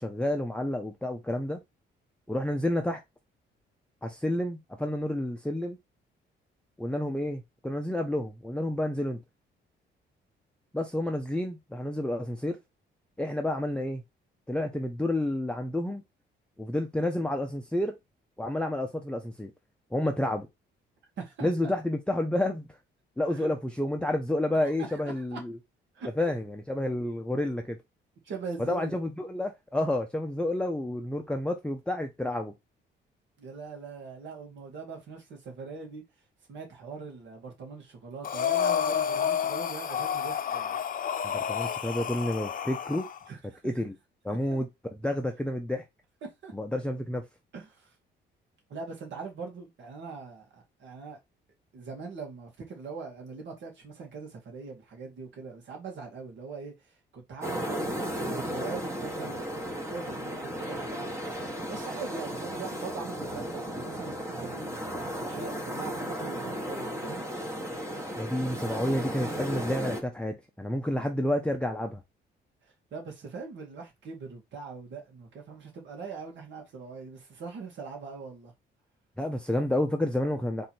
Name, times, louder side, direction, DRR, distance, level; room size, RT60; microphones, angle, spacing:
voice 1, 0.0-1.6 2.3-3.0 4.0-5.8 6.8-9.2 10.7-12.6 13.2-14.0 14.5-16.0 16.6-17.9 18.4-19.5 19.9-20.5 21.4-22.7 23.2-25.6 26.2-27.8 28.7-32.5 41.2-43.1 43.6-43.9 44.2-44.7 45.0-45.8 46.5-47.2 68.2-72.0 79.2-80.7, left 1 dB, 5° left, 0.7 m, -30 dB
voice 2, 21.2-21.7 23.3-23.5 24.6-25.4 25.9-26.1 28.2-29.0 33.4-36.0 36.5-40.8 43.3-43.7 44.3-44.6 46.2-46.5 47.5-47.9 48.7-51.2 51.7-61.1 61.7-67.3 72.6-78.5, right 4 dB, 70° right, 2.2 m, -42 dB
Breathing, 38.2-43.2, left 8 dB, 45° left, 0.6 m, -30 dB
sound 1, 57.4-70.0, equal, 15° right, 1.3 m, -35 dB
3.9 x 3.1 x 4.3 m
cardioid pair, 90°, 20 cm